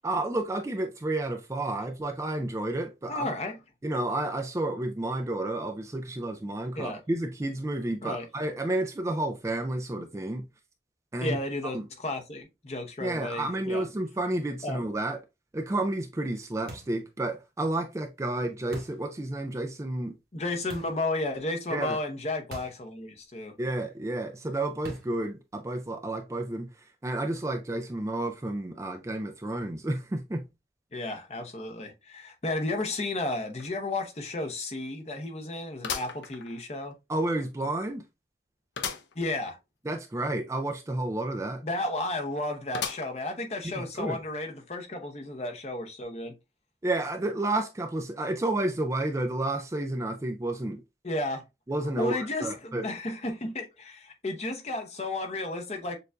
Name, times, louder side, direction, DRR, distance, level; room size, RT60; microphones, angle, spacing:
voice 1, 0.0-3.3 3.8-10.4 11.1-11.4 11.7-11.8 13.0-15.2 15.5-20.1 21.7-22.0 23.6-26.7 27.0-30.5 37.1-38.0 39.9-41.6 43.6-44.2 46.8-50.8 51.7-52.9, right 2 dB, 15° right, 0.3 m, -31 dB
voice 2, 3.1-3.6 6.8-7.0 8.0-8.3 11.2-13.9 14.6-14.8 20.3-23.5 30.9-36.9 39.1-39.6 41.6-46.3 51.0-51.4 52.0-56.0, left 2 dB, 35° left, 0.7 m, -33 dB
sound 1, 16.7-17.1 18.7-19.1 20.7-21.0 22.5-22.9 23.1-23.2 24.8-25.2, right 1 dB, 55° right, 1.1 m, -44 dB
sound 2, 33.6-33.7 34.1-34.2 35.8-36.9 37.4-37.5 38.8-39.2 39.6-39.7 39.9-40.0 42.7-43.4 43.9-44.0 45.0-45.1, left 7 dB, 90° left, 0.6 m, -36 dB
6.6 x 2.5 x 2.2 m
head